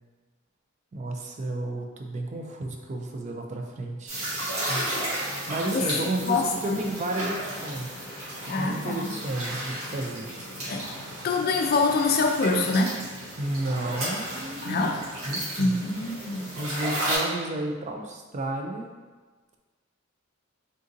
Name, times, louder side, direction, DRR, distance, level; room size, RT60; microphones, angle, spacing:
voice 1, 0.9-4.2 4.7-7.9 8.4-10.3 13.4-14.9 15.2-15.8 16.6-18.9, right 2 dB, 35° right, 2 dB, 0.3 m, -32 dB
sound 1, 4.1-17.2, right 1 dB, 85° right, 1.3 m, -34 dB
voice 2, 6.3-6.8 8.5-9.1 10.7-10.8 11.2-13.0 14.6-14.9 15.6-16.5, left 3 dB, 50° left, 2 dB, 0.4 m, -25 dB
3.7 x 2.6 x 2.5 m, 1.3 s
head